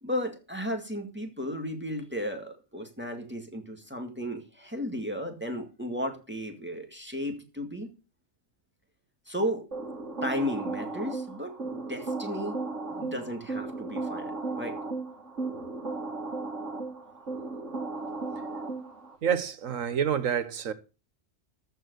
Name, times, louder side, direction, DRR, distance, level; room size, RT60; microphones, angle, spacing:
voice 1, 0.0-7.9 9.3-9.6 10.2-12.6 12.9-14.8, equal, 10° right, 2.1 m, -34 dB
sound 1, 9.7-19.2, right 3 dB, 65° right, 2.5 m, -35 dB
voice 2, 19.2-20.7, right 8 dB, 80° right, 1.5 m, -28 dB
14.0 x 4.7 x 7.9 m
omnidirectional pair, 1.3 m